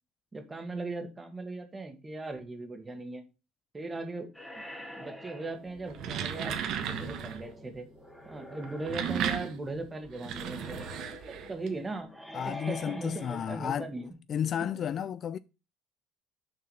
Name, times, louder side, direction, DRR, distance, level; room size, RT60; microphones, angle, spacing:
voice 1, 0.3-3.2 3.7-4.3 5.0-7.9 8.2-10.9 11.2-14.1 14.6-14.8, right 2 dB, 20° right, 1.6 m, -39 dB
sound 1, 4.4-14.1, left 1 dB, 5° left, 1.5 m, -47 dB
sound 2, 5.8-7.5 8.6-11.7, right 9 dB, 65° right, 1.1 m, -35 dB
voice 2, 12.3-13.9 14.3-15.4, left 9 dB, 45° left, 0.3 m, -32 dB
6.2 x 4.6 x 5.7 m
cardioid pair, 110°, 0 cm